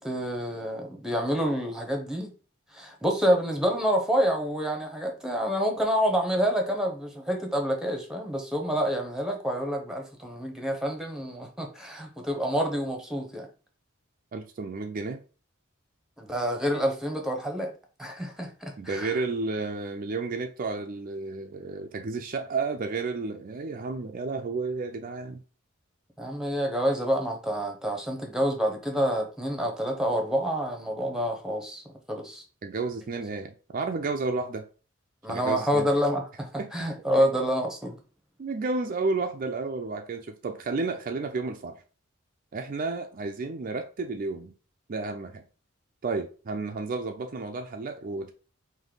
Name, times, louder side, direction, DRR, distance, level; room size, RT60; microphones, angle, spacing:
voice 1, 0.0-2.3 2.7-13.5 16.2-17.7 18.0-19.2 26.2-32.4 35.2-38.0, equal, 5° right, 0.9 m, -28 dB
voice 2, 14.3-15.2 18.8-25.4 32.6-34.6 35.3-35.9 36.6-36.9 38.4-41.8 42.5-44.5 44.9-45.4 46.0-48.3, right 3 dB, 40° right, 0.4 m, -32 dB
5.2 x 2.6 x 3.8 m
head